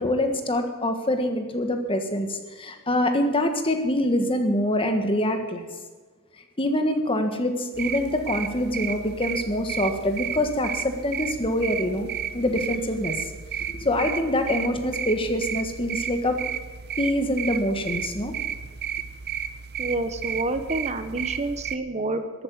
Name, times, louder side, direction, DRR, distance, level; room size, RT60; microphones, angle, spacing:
voice 1, 0.0-5.7 6.6-12.1 12.3-13.3 13.7-16.4 17.0-18.3, left 1 dB, 25° left, 6 dB, 1.5 m, -25 dB
sound 1, 7.7-21.8, right 8 dB, 50° right, 0.7 m, -33 dB
voice 2, 19.8-22.4, right 2 dB, 30° right, 9 dB, 1.1 m, -28 dB
13.5 x 8.9 x 9.4 m, 1.4 s
head